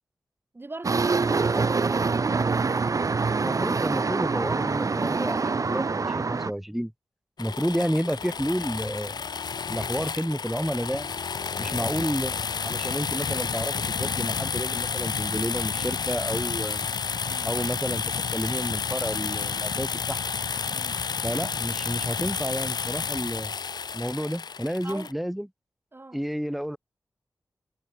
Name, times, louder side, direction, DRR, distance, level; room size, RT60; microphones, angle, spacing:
voice 1, 0.5-2.1 11.7-11.9 17.2-17.5 20.7-21.0 24.8-25.1 25.9-26.2, right 2 dB, 30° right, 1.6 m, -41 dB
sound 1, 0.8-6.5, right 4 dB, 50° right, 1.0 m, -25 dB
voice 2, 3.4-6.9 7.4-9.2 9.7-11.1 11.6-16.9 17.4-20.2 21.2-23.5 23.9-25.5 26.1-26.8, equal, ahead, 1.7 m, -31 dB
sound 2, 7.4-25.1, left 6 dB, 75° left, 0.9 m, -30 dB
wide cardioid pair, 75°, 7 cm